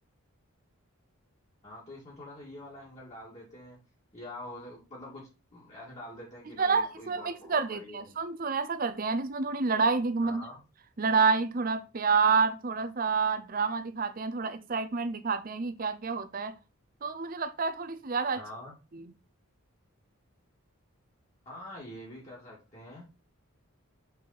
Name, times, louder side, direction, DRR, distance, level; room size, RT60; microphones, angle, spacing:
voice 1, 1.6-3.8 4.1-8.1 10.2-10.6 18.3-18.8 21.5-23.1, left 1 dB, 30° left, 2.0 m, -45 dB
voice 2, 6.6-10.4 11.0-16.6 17.0-18.4, right 5 dB, 40° right, 0.5 m, -28 dB
6.5 x 4.2 x 4.0 m
head